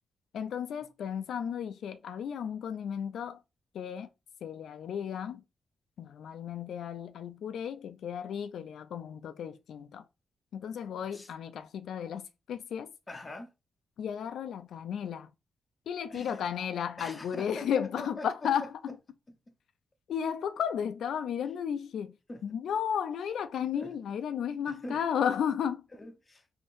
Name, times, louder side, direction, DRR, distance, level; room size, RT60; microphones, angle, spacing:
voice 1, 0.3-3.4 3.7-4.1 4.4-5.4 6.0-10.1 10.5-12.9 14.0-15.3 15.9-19.0 20.1-22.2 22.4-25.8, left 8 dB, 80° left, 0.3 m, -34 dB
voice 2, 13.1-13.5 16.1-16.4 17.0-18.7 22.3-22.6 23.7-23.9 24.7-25.0 25.9-26.6, left 2 dB, 20° left, 0.6 m, -43 dB
3.5 x 2.7 x 2.5 m
wide cardioid pair, 160°, 0 cm